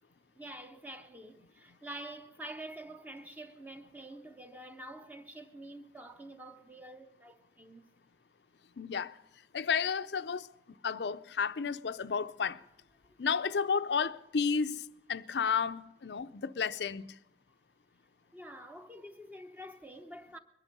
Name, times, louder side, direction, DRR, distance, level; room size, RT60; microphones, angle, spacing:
voice 1, 0.4-7.8 13.0-13.2 18.3-20.4, right 1 dB, 10° right, 0.8 m, -47 dB
voice 2, 8.8-9.1 9.5-10.5 10.8-12.6 13.2-17.1, left 6 dB, 75° left, 0.5 m, -32 dB
22.0 x 10.5 x 5.3 m
head